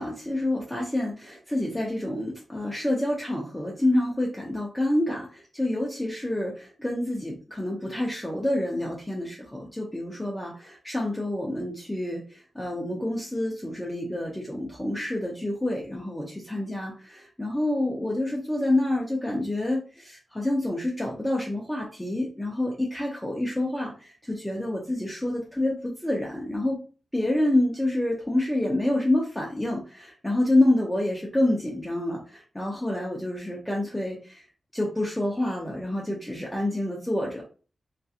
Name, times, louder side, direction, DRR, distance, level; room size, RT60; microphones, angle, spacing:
voice 1, 0.0-26.8 27.1-34.4 34.7-37.4, left 1 dB, 5° left, -3 dB, 0.6 m, -28 dB
3.0 x 2.4 x 2.7 m, 0.37 s
wide cardioid pair, 100°, 0 cm